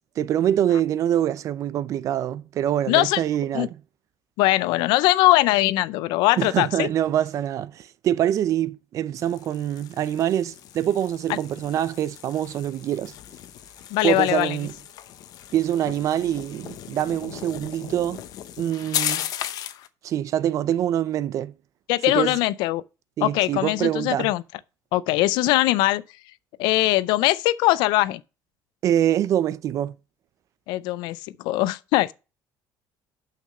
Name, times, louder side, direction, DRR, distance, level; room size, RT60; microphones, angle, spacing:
voice 1, 0.2-3.7 6.4-13.1 14.0-14.7 15.5-18.2 18.6-19.2 20.0-21.5 22.1-22.3 23.2-24.3 28.8-29.9, right 11 dB, 45° right, 0.5 m, -25 dB
voice 2, 2.9-3.2 3.5-3.7 4.4-6.9 13.9-14.6 21.9-22.8 23.2-24.4 24.9-26.0 26.6-28.2 30.7-31.2 31.4-32.1, left 17 dB, 85° left, 0.5 m, -21 dB
sound 1, 9.2-19.9, left 11 dB, 55° left, 0.8 m, -36 dB
6.2 x 5.8 x 6.5 m
cardioid pair, 150°, 7 cm